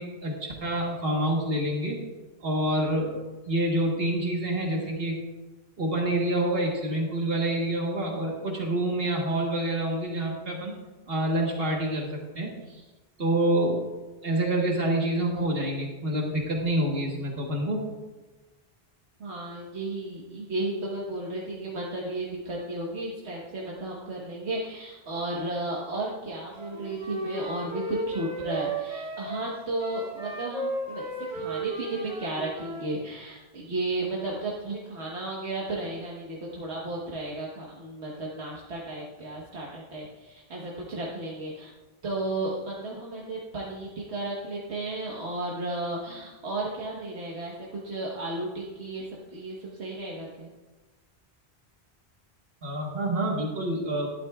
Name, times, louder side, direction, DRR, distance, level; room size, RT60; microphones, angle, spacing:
voice 1, 0.0-2.0 2.4-3.2 3.5-5.2 5.8-10.7 11.1-12.8 13.2-13.9 14.2-17.8 52.6-54.1, right 1 dB, 65° right, 0 dB, 1.5 m, -27 dB
voice 2, 19.2-31.1 31.3-41.7 42.0-50.5, right 2 dB, 85° right, -4 dB, 1.5 m, -34 dB
Wind instrument woodwind instrument, 26.6-32.9, right 1 dB, 35° right, 3.5 m, -34 dB
12.5 x 11.5 x 2.3 m, 1.2 s
omnidirectional pair, 1.1 m